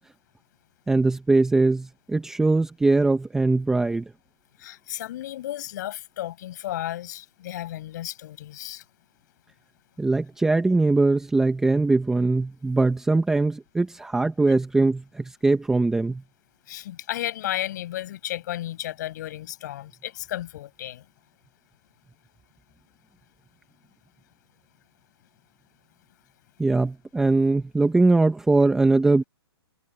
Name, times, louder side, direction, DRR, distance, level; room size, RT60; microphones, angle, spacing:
voice 1, 0.9-4.0 10.0-16.2 26.6-29.2, right 3 dB, 5° right, 1.1 m, -21 dB
voice 2, 4.6-8.8 16.7-21.0, left 13 dB, 40° left, 7.7 m, -33 dB
hypercardioid pair, 160°, 14 cm